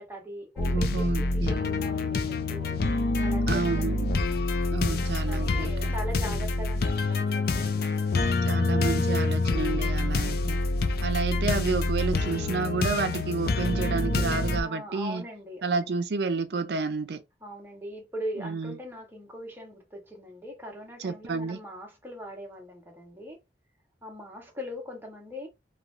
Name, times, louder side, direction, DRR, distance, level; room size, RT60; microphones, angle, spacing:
voice 1, 0.0-2.8 3.2-4.2 4.9-8.1 10.8-11.4 14.3-15.9 17.4-23.4 24.0-25.5, equal, 10° right, 0.8 m, -41 dB
sound 1, 0.6-14.6, left 2 dB, 55° left, 0.4 m, -26 dB
voice 2, 0.7-1.5 3.5-4.1 4.7-5.9 8.5-10.6 11.0-15.2 15.6-17.2 18.4-18.8 21.0-21.6, right 4 dB, 65° right, 0.4 m, -30 dB
3.0 x 2.3 x 2.5 m
head